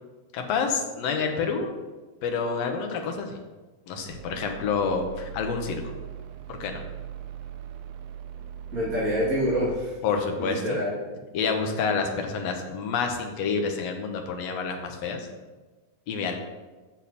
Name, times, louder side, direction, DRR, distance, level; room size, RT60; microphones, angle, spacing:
voice 1, 0.3-1.7 2.2-3.4 3.9-5.9 6.5-6.8 10.0-10.8 11.3-15.3 16.1-16.3, left 5 dB, 65° left, 3 dB, 1.8 m, -28 dB
sound 1, 4.1-9.8, right 9 dB, 80° right, 1.7 m, -40 dB
voice 2, 8.7-9.9 10.4-10.9, equal, 25° right, -11 dB, 3.3 m, -26 dB
8.5 x 6.4 x 4.2 m, 1.2 s
omnidirectional pair, 3.7 m